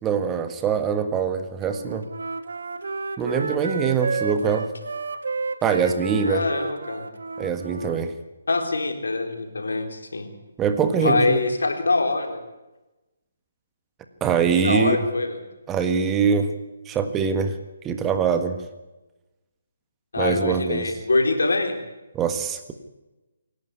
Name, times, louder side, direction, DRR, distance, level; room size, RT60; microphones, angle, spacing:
voice 1, 0.0-2.1 3.2-4.7 5.6-6.4 7.4-8.1 10.6-11.4 14.2-15.0 15.7-16.5 16.9-17.6 17.8-18.6 20.2-20.9 22.1-22.7, right 6 dB, 15° right, 8 dB, 1.6 m, -23 dB
Wind instrument woodwind instrument, 1.7-8.0, right 4 dB, 70° right, 1.5 m, -31 dB
voice 2, 6.2-7.0 8.5-10.3 11.0-12.4 14.5-15.4 20.1-21.8, left 3 dB, 75° left, 5 dB, 3.9 m, -24 dB
26.5 x 12.0 x 9.8 m, 1.1 s
figure-of-eight pair, 145°, 0 cm